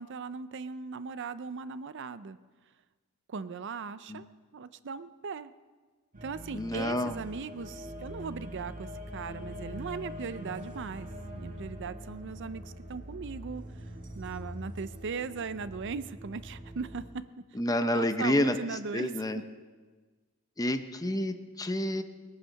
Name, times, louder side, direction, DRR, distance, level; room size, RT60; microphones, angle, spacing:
voice 1, 0.0-2.4 3.3-4.3 4.5-5.5 6.2-11.1 11.3-13.6 14.2-17.1 17.9-19.4, right 5 dB, 60° right, 14 dB, 0.5 m, -38 dB
sound 1, 6.1-17.1, equal, 40° right, 2.1 m, -43 dB
voice 2, 6.5-7.2 17.6-18.6 18.9-19.4 20.6-22.0, left 1 dB, 15° left, 8 dB, 0.7 m, -29 dB
21.0 x 9.2 x 6.4 m, 1.4 s
head